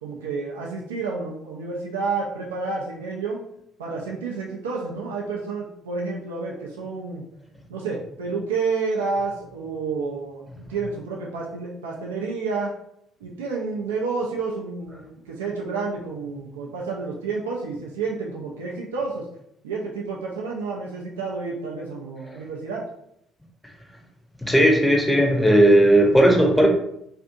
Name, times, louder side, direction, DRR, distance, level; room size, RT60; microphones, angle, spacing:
voice 1, 0.0-3.4 3.8-7.2 7.7-12.7 13.2-19.2 19.6-22.9, right 4 dB, 80° right, -2 dB, 0.4 m, -30 dB
voice 2, 24.4-26.7, right 1 dB, 5° left, 1 dB, 0.7 m, -16 dB
2.5 x 2.5 x 2.5 m, 0.75 s
figure-of-eight pair, 50°, 0 cm